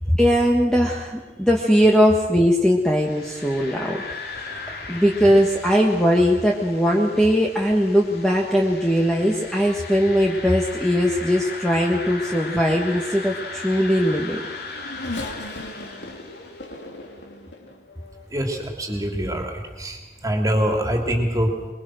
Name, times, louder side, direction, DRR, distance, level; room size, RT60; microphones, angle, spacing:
voice 1, 0.1-4.0 4.9-14.4, equal, 5° left, -1 dB, 1.5 m, -19 dB
sound 1, 2.9-16.8, left 3 dB, 60° left, 3.0 m, -37 dB
Race car auto racing / Accelerating revving vroom, 14.1-18.6 19.2-19.3 20.5-20.6, left 2 dB, 85° left, 3.1 m, -37 dB
voice 2, 18.3-20.0 20.2-21.5, equal, 20° right, 2 dB, 3.0 m, -24 dB
23.0 x 22.5 x 6.4 m, 1.2 s
head